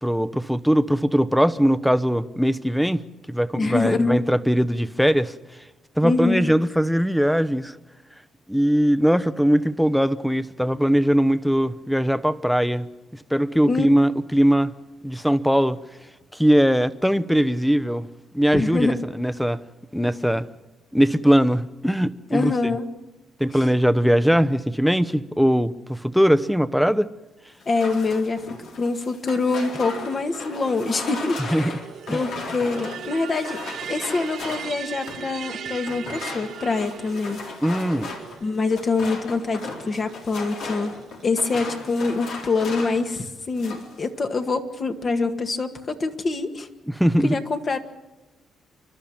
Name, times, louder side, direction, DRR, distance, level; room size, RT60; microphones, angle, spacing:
voice 1, 0.0-3.0 3.3-5.3 6.0-7.8 8.5-12.9 13.3-14.7 15.0-15.8 16.3-18.1 18.3-19.6 19.9-20.5 20.9-22.5 23.4-27.1 31.5-31.7 32.1-32.2 37.6-38.1 46.9-47.4, equal, ahead, 16 dB, 0.8 m, -20 dB
voice 2, 3.6-4.2 6.0-6.4 13.7-13.9 18.5-19.0 22.3-22.9 27.7-28.4 28.8-31.7 32.1-33.6 33.9-37.5 38.4-46.7 47.2-47.8, left 3 dB, 40° left, 7 dB, 1.8 m, -25 dB
sound 1, 27.6-35.3 35.8-43.1 43.4-44.0, left 3 dB, 75° left, 3.8 m, -36 dB
sound 2, 29.4-42.1, right 8 dB, 70° right, 1.2 m, -40 dB
30.0 x 12.5 x 8.8 m, 1.1 s
cardioid pair, 90°, 0 cm